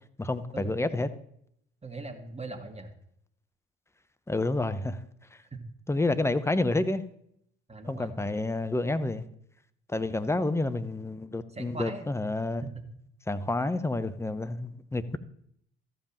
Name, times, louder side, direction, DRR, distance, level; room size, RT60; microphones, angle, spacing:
voice 1, 0.2-1.1 4.3-5.0 5.9-7.0 7.9-9.3 9.9-12.6 13.3-15.2, left 2 dB, 10° left, 0.9 m, -29 dB
voice 2, 1.8-2.9 5.5-5.6 7.7-8.3 11.5-12.1 12.6-12.8, right 3 dB, 20° right, 2.1 m, -40 dB
13.5 x 5.4 x 7.4 m
hypercardioid pair, 55°, 30 cm